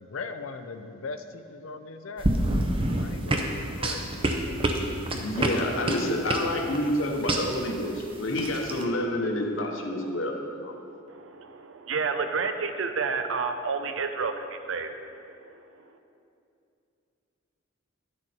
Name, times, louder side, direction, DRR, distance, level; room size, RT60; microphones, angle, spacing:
voice 1, 0.0-2.3 3.0-4.0 4.5-5.3, left 4 dB, 85° left, 9 dB, 0.6 m, -39 dB
sound 1, 2.2-8.8, right 1 dB, 25° right, 0.7 m, -28 dB
voice 2, 5.2-10.7, left 1 dB, 70° left, 2 dB, 1.0 m, -28 dB
voice 3, 11.1-14.9 15.7-15.8, right 4 dB, 70° right, 7 dB, 0.6 m, -30 dB
10.5 x 6.3 x 4.4 m, 2.6 s
head